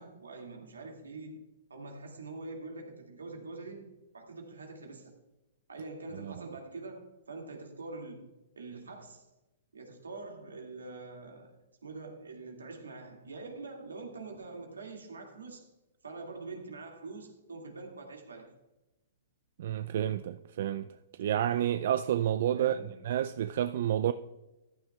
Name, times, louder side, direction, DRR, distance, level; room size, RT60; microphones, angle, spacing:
voice 1, 0.0-5.1 5.7-9.3 9.7-11.6 11.8-15.7 16.0-18.5 22.5-23.0, right 3 dB, 90° right, 2.2 m, -45 dB
voice 2, 19.6-20.9 21.2-22.8 23.0-24.1, right 11 dB, 60° right, 0.4 m, -29 dB
14.5 x 11.5 x 2.4 m
hypercardioid pair, 120°, 0 cm